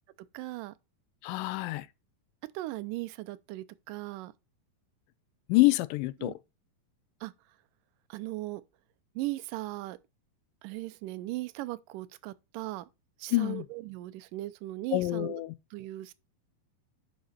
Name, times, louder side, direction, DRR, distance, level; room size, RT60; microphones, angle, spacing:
voice 1, 0.3-0.7 2.5-4.3 6.2-6.4 7.2-7.3 8.1-8.6 9.2-10.0 10.6-12.9 13.2-15.4 15.7-16.1, right 18 dB, 75° right, 2.2 m, -38 dB
voice 2, 1.2-1.9 5.5-6.3 13.3-13.7 14.9-15.5, left 19 dB, 80° left, 2.1 m, -26 dB
10.5 x 4.2 x 4.3 m
omnidirectional pair, 4.1 m